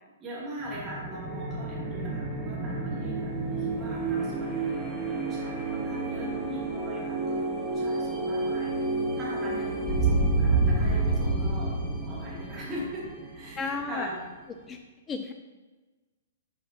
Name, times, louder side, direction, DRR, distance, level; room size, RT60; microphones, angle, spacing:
voice 1, 0.2-4.7 5.0-8.8 9.2-14.2, right 1 dB, 20° right, -7 dB, 2.4 m, -41 dB
sound 1, 0.6-14.1, right 2 dB, ahead, 1.5 m, -29 dB
voice 2, 10.4-10.8 13.6-14.1 14.7-14.8 15.1-15.3, left 4 dB, 20° left, 6 dB, 0.4 m, -34 dB
10.5 x 5.8 x 2.8 m, 1.3 s
figure-of-eight pair, 115°, 0 cm